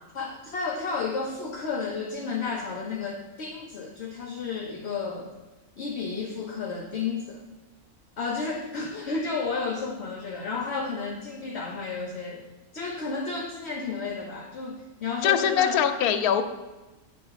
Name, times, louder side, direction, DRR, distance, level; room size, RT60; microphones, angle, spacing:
voice 1, 0.1-5.3 5.8-7.4 8.2-12.5 12.7-15.8, left 4 dB, 55° left, 0 dB, 0.9 m, -32 dB
voice 2, 15.2-16.5, left 9 dB, 85° left, 8 dB, 1.1 m, -22 dB
8.4 x 3.4 x 5.6 m, 1.2 s
omnidirectional pair, 1.5 m